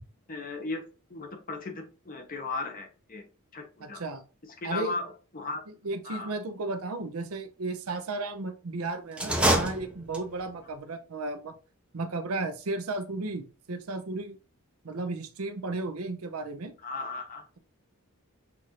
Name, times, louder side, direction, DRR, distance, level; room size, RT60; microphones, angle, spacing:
voice 1, 0.3-0.8 1.1-3.2 3.5-4.0 4.6-5.1 5.3-5.6 6.0-6.3 16.8-17.4, left 3 dB, 40° left, 4 dB, 0.9 m, -36 dB
voice 2, 3.8-4.2 4.6-4.9 5.8-11.6 11.9-14.4 14.8-16.7, right 3 dB, 75° right, 9 dB, 0.6 m, -34 dB
sound 1, 9.1-10.5, right 1 dB, 5° right, 0.6 m, -26 dB
5.9 x 2.6 x 2.9 m, 0.35 s
head